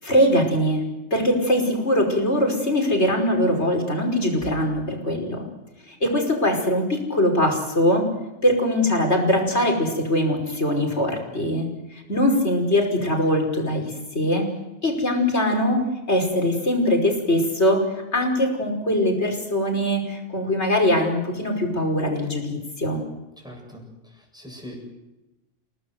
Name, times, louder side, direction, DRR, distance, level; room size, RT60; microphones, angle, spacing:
voice 1, 0.0-0.8 1.1-5.4 5.9-8.1 8.4-14.5 14.8-15.8 16.1-17.8 18.1-23.0, left 1 dB, 60° left, 2 dB, 5.7 m, -22 dB
voice 2, 23.4-24.8, equal, 5° right, 1 dB, 7.9 m, -42 dB
30.0 x 18.5 x 8.0 m, 1.0 s
omnidirectional pair, 1.3 m